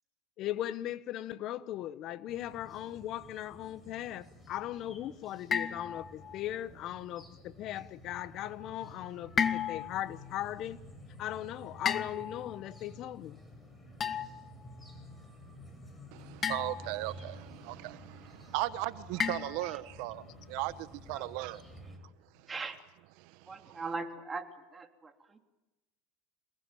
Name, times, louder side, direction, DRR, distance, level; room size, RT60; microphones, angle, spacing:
voice 1, 0.4-10.8 11.2-13.4, left 13 dB, 50° left, 1.0 m, -38 dB
sound 1, 2.3-22.0, left 1 dB, 10° left, 7.3 m, -52 dB
sound 2, 5.5-6.4 9.4-10.1 11.9-12.6 14.0-14.5 16.4-17.1 19.2-19.9, left 7 dB, 30° left, 1.5 m, -33 dB
voice 2, 16.1-21.6 22.2-22.5 23.2-23.8, right 17 dB, 65° right, 1.1 m, -37 dB
voice 3, 22.5-22.8 23.4-25.4, right 3 dB, 20° right, 3.3 m, -40 dB
27.5 x 19.0 x 9.2 m
supercardioid pair, 105°, 0 cm